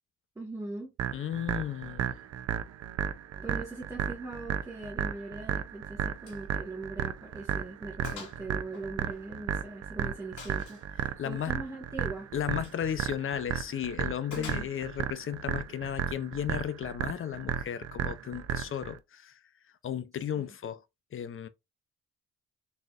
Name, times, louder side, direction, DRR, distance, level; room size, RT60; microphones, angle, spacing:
voice 1, 0.3-0.9 3.4-12.3 14.3-14.7 20.3-20.5, right 2 dB, 10° right, 1.5 m, -41 dB
sound 1, 1.0-19.0, right 9 dB, 55° right, 0.6 m, -34 dB
voice 2, 1.1-2.2 11.2-11.5 12.3-19.4 19.8-20.8 21.1-21.5, left 9 dB, 45° left, 0.6 m, -34 dB
Gunshot gunfire, 6.2-6.5 6.8-6.9 7.4-7.5 8.0-8.4 8.7-9.7 10.4-10.9 12.5-12.8 14.3-15.0, left 5 dB, 80° left, 2.0 m, -46 dB
4.1 x 3.9 x 2.4 m
cardioid pair, 90°, 30 cm